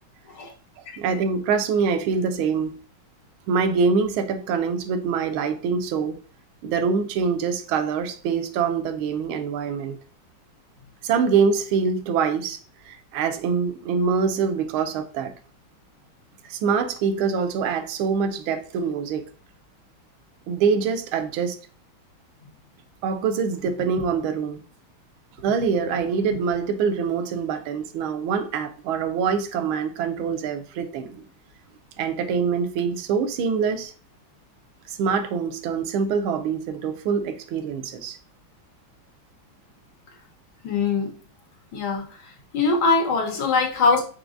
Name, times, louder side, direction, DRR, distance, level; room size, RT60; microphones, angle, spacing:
voice 1, 1.0-2.8 3.5-6.2 6.6-10.0 11.0-12.6 12.8-15.3 16.4-19.3 20.5-21.6 23.0-24.6 25.4-31.2 32.0-33.9 34.9-38.2, right 5 dB, 90° right, 1.4 m, -24 dB
voice 2, 40.6-41.1 41.7-42.1 42.5-44.0, left 4 dB, 80° left, 1.8 m, -22 dB
4.7 x 3.9 x 2.5 m
omnidirectional pair, 2.2 m